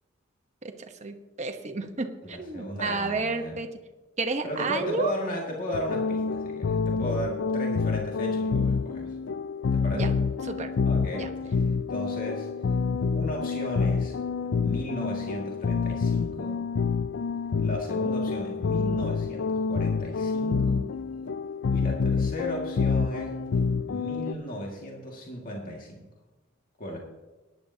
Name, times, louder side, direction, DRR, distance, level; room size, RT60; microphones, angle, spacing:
voice 1, 1.0-3.7 4.2-5.1 9.9-10.1 10.5-10.7 11.1-11.3, right 3 dB, 35° right, 5 dB, 1.0 m, -31 dB
voice 2, 2.3-3.6 4.4-9.2 9.7-10.2 10.8-12.5 13.1-14.2 14.6-16.6 17.6-20.9 21.7-23.5 23.9-26.1 26.8-27.0, equal, 45° left, -2 dB, 2.1 m, -35 dB
sound 1, 5.7-24.3, left 5 dB, 60° left, 0.4 m, -27 dB
18.5 x 10.5 x 2.8 m, 1.2 s
head